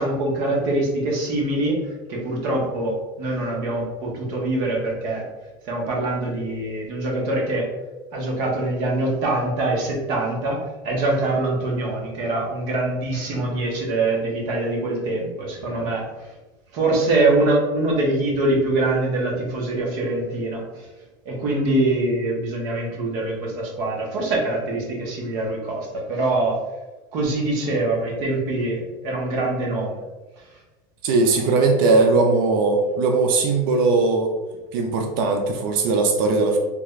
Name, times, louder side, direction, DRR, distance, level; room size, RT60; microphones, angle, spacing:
voice 1, 0.0-5.2 5.6-7.7 8.1-16.3 16.7-20.9 21.2-26.6 27.1-30.0, right 2 dB, 60° right, -2 dB, 1.0 m, -24 dB
voice 2, 31.0-34.3 34.7-36.6, right 3 dB, 90° right, 3 dB, 0.5 m, -19 dB
3.4 x 2.4 x 3.2 m, 1.2 s
cardioid pair, 165°, 11 cm